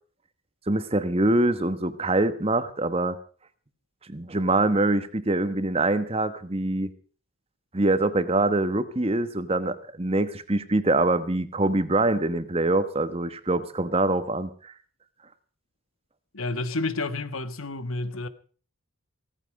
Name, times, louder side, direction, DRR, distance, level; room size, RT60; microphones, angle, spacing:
voice 1, 0.7-3.2 4.1-6.9 7.7-14.7, right 2 dB, 30° right, 1.2 m, -24 dB
voice 2, 16.3-18.3, left 2 dB, 85° left, 1.3 m, -30 dB
16.5 x 15.0 x 4.9 m
head